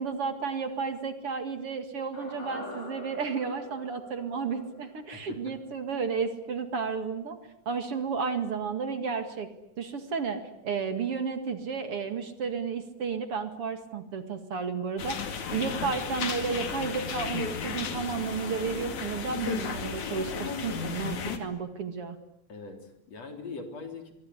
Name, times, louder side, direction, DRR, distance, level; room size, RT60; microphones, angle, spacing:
voice 1, 0.0-7.4 7.7-9.5 9.8-22.2, right 5 dB, 50° right, 9 dB, 2.8 m, -32 dB
sound 1, 2.1-6.4 6.7-6.8, left 2 dB, 35° left, 6.5 m, -45 dB
voice 2, 5.1-5.5 22.5-24.1, left 4 dB, 60° left, 6 dB, 4.8 m, -42 dB
sound 2, 15.0-21.4, left 6 dB, 80° left, 3.8 m, -34 dB
25.0 x 24.0 x 10.0 m, 0.79 s
omnidirectional pair, 3.3 m